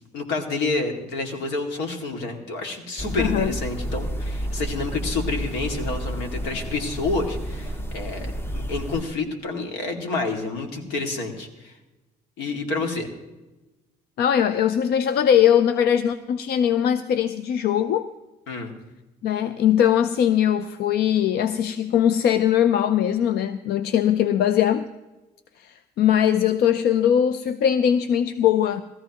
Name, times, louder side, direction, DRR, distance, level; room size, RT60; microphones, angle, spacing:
voice 1, 0.1-11.8 12.4-13.1 18.5-18.7, left 3 dB, 90° left, 4 dB, 2.3 m, -29 dB
sound 1, 3.0-9.0, equal, 15° left, 0.9 m, -30 dB
voice 2, 3.2-3.6 14.2-18.1 19.2-24.9 25.6-28.8, left 9 dB, 70° left, 12 dB, 0.6 m, -21 dB
20.0 x 14.0 x 3.0 m, 1.1 s
cardioid pair, 110°, 17 cm